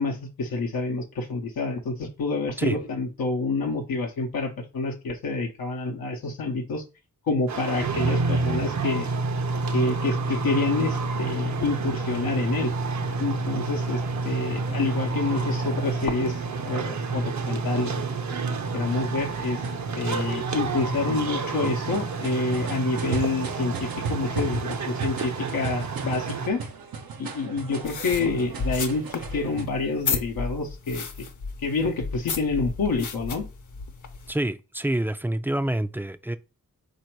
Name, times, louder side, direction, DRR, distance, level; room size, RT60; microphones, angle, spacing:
voice 1, 0.0-6.8 7.3-9.1 9.7-12.7 13.2-17.9 18.4-19.6 20.0-26.6 27.2-31.3 31.6-33.4, left 3 dB, 90° left, 0.8 m, -28 dB
sound 1, 7.5-26.5, right 3 dB, 55° right, 0.6 m, -29 dB
sound 2, 10.3-29.7, right 4 dB, 85° right, 0.7 m, -37 dB
sound 3, 27.8-34.3, left 4 dB, 60° left, 0.8 m, -33 dB
voice 2, 34.3-36.4, right 1 dB, 5° right, 0.3 m, -27 dB
4.1 x 2.7 x 4.5 m
cardioid pair, 55°, 35 cm